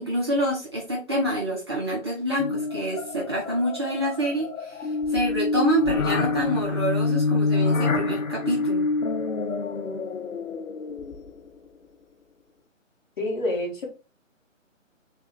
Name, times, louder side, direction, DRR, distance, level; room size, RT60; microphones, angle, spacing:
voice 1, 0.0-8.8, right 1 dB, 20° right, -5 dB, 0.7 m, -27 dB
sound 1, 2.4-11.5, left 4 dB, 80° left, 0.8 m, -27 dB
voice 2, 13.2-13.9, left 1 dB, 40° left, -2 dB, 1.9 m, -27 dB
3.6 x 3.3 x 4.1 m, 0.33 s
figure-of-eight pair, 155°, 39 cm